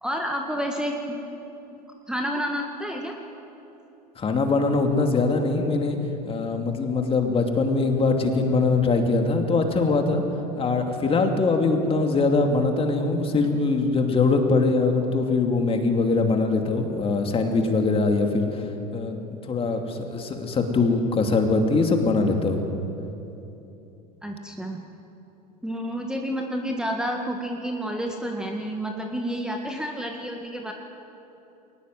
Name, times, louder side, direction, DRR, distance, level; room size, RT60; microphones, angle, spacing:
voice 1, 0.0-1.2 2.1-3.2 24.2-24.8 25.6-30.7, equal, 5° right, 2 dB, 1.8 m, -30 dB
voice 2, 4.2-6.0 6.3-10.2 10.6-18.6 18.9-22.6, left 3 dB, 25° left, 4 dB, 2.7 m, -22 dB
22.0 x 19.5 x 7.8 m, 2.9 s
figure-of-eight pair, 80°, 21 cm